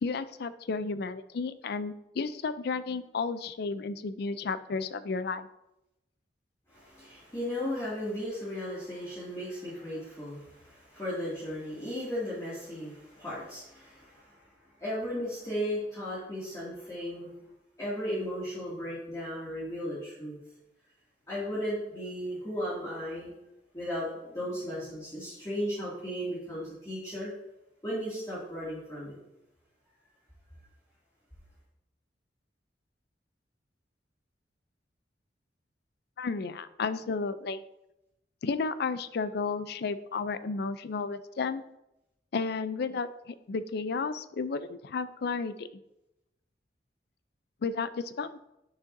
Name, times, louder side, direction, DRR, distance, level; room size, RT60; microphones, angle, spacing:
voice 1, 0.0-5.5 36.2-37.6 38.4-41.6 42.3-45.7 47.6-48.4, left 4 dB, 60° left, 14 dB, 0.4 m, -33 dB
voice 2, 6.7-14.4 14.8-17.3 17.8-20.4 21.3-23.3 23.7-27.3 27.8-29.2, equal, 20° left, -11 dB, 2.3 m, -35 dB
10.0 x 6.4 x 2.7 m, 0.89 s
head